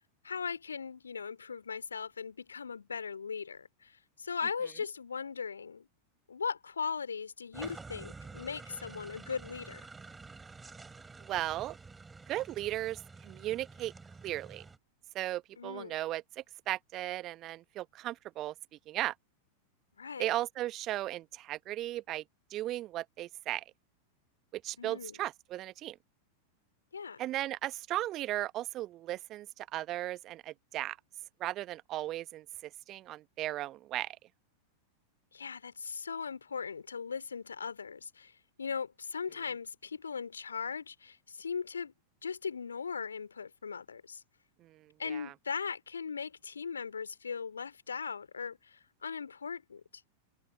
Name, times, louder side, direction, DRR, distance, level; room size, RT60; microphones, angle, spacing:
voice 1, 0.2-5.9 6.3-9.8 15.6-16.0 20.0-20.3 24.8-25.1 26.9-27.2 35.3-38.3 38.6-41.9 42.2-44.2 45.0-49.8, left 6 dB, 75° left, 2.6 m, -39 dB
Land Rover Down hill, 7.5-14.8, right 4 dB, 10° right, 6.6 m, -49 dB
voice 2, 11.2-11.8 12.3-13.9 14.2-14.6 15.1-18.5 18.9-19.1 20.2-22.2 22.5-23.6 24.5-26.0 27.2-31.0 31.4-34.2 44.6-45.3, right 14 dB, 35° right, 1.2 m, -36 dB
figure-of-eight pair, 90°, 0 cm